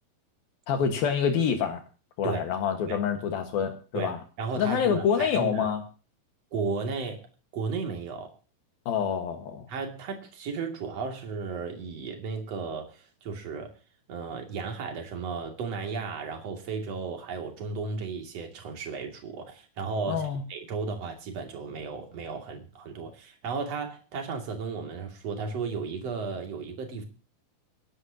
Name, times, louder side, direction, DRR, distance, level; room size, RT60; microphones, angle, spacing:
voice 1, 0.7-1.8 2.2-4.2 4.6-5.8 8.9-9.6 20.1-20.4, left 7 dB, 70° left, 6 dB, 3.3 m, -27 dB
voice 2, 3.9-5.7 6.5-7.3 7.5-8.3 9.7-13.7 14.1-27.1, right 4 dB, 45° right, 4 dB, 3.3 m, -34 dB
24.5 x 11.5 x 2.8 m, 0.37 s
omnidirectional pair, 4.4 m